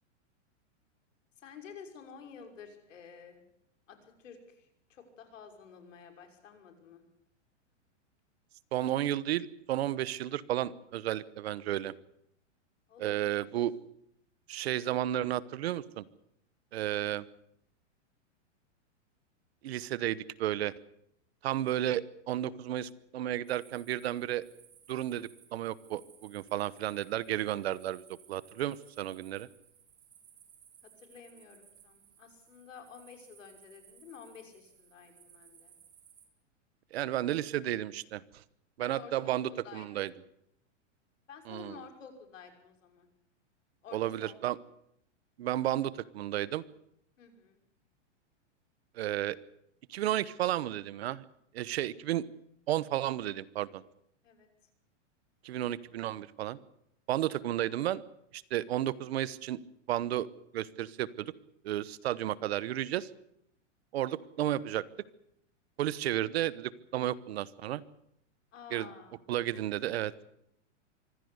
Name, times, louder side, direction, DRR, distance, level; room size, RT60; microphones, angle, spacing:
voice 1, 1.4-3.5 3.9-7.0 12.9-13.5 30.8-35.7 38.8-40.1 41.3-43.1 43.8-44.4 47.2-47.6 54.2-54.5 68.5-69.2, left 6 dB, 85° left, 5 dB, 5.9 m, -51 dB
voice 2, 8.7-11.9 13.0-13.7 14.5-16.0 16.7-17.2 19.6-20.7 21.4-24.4 24.9-29.5 36.9-38.2 38.8-40.1 41.5-41.8 43.9-44.6 45.4-46.6 49.0-49.4 49.9-51.2 51.5-52.3 52.7-53.8 55.4-56.6 57.1-58.0 58.3-59.6 59.9-60.3 60.5-61.3 61.6-63.1 63.9-64.8 65.8-67.8 68.7-68.9 69.3-70.1, right 13 dB, 55° right, 18 dB, 1.1 m, -32 dB
sound 1, 23.4-36.2, right 8 dB, 75° right, 7.3 m, -60 dB
24.5 x 16.0 x 8.0 m, 0.76 s
supercardioid pair, 165°, 37 cm